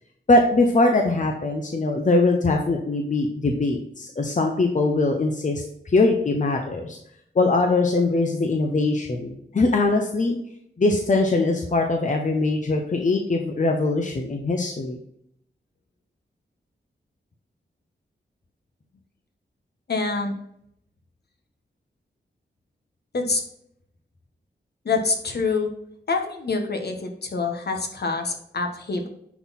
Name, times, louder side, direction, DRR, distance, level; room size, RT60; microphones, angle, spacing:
voice 1, 0.3-7.0 7.3-10.4 10.8-15.0, left 2 dB, 40° left, 3 dB, 0.9 m, -22 dB
voice 2, 19.9-20.4 23.1-23.4 24.8-25.7 26.1-29.1, left 4 dB, 60° left, 3 dB, 1.3 m, -26 dB
10.0 x 4.1 x 4.2 m, 0.73 s
wide cardioid pair, 80°, 19 cm